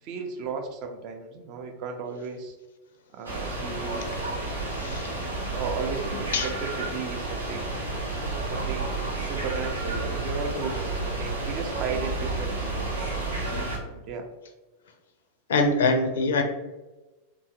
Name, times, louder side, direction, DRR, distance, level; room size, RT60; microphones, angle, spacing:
voice 1, 0.0-2.6 3.1-4.1 5.5-7.7 8.4-12.7 13.3-14.3, right 5 dB, 40° right, 4 dB, 0.4 m, -35 dB
sound 1, 3.2-13.8, right 2 dB, 80° right, 0.6 m, -31 dB
voice 2, 4.8-5.1 6.3-6.5 15.5-16.4, left 3 dB, 60° left, 5 dB, 0.4 m, -23 dB
2.7 x 2.3 x 2.6 m, 1.1 s
figure-of-eight pair, 90°, 0 cm